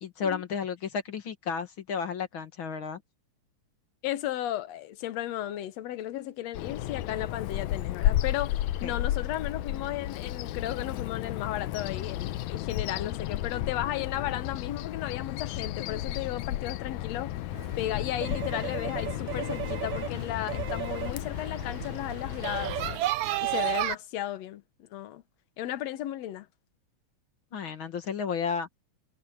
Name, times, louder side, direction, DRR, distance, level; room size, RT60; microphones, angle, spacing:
voice 1, 0.0-3.0 8.8-9.0 27.5-28.7, left 6 dB, 45° left, 2.4 m, -32 dB
voice 2, 4.0-17.4 17.8-23.0 23.4-24.6 24.9-25.2 25.6-26.5, left 13 dB, 70° left, 2.1 m, -34 dB
Bird vocalization bird call bird song, 6.5-23.0, left 13 dB, 85° left, 2.1 m, -33 dB
sound 1, 17.5-23.9, right 15 dB, 80° right, 2.1 m, -33 dB
omnidirectional pair, 3.3 m